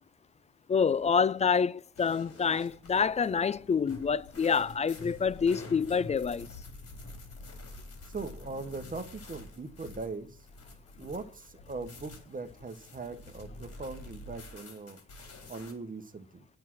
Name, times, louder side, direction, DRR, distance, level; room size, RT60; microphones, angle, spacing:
voice 1, 0.7-6.5, left 6 dB, 25° left, 0.4 m, -27 dB
sound 1, 2.0-15.7, left 2 dB, 50° left, 4.0 m, -48 dB
voice 2, 8.0-10.4 11.0-15.0 15.5-16.4, right 3 dB, 25° right, 1.3 m, -40 dB
9.2 x 7.7 x 6.1 m
cardioid pair, 90°, 30 cm